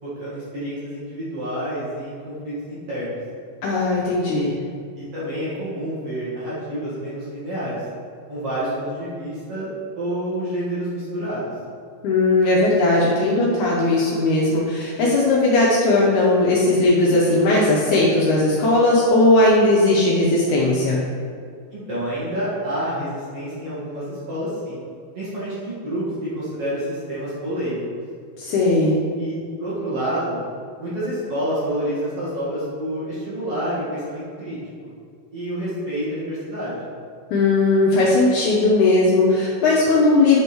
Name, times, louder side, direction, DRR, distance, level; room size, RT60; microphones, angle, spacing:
voice 1, 0.0-3.2 5.0-7.8 8.3-9.7 9.9-11.5 21.7-24.8 25.1-27.8 29.2-30.4 30.8-34.6 34.8-34.9 35.3-36.9, equal, 50° right, -11 dB, 2.2 m, -28 dB
voice 2, 3.6-4.5 12.0-21.0 28.4-29.0 37.3-40.4, left 2 dB, 85° left, -5 dB, 1.7 m, -18 dB
8.6 x 3.5 x 4.5 m, 2.2 s
omnidirectional pair, 4.4 m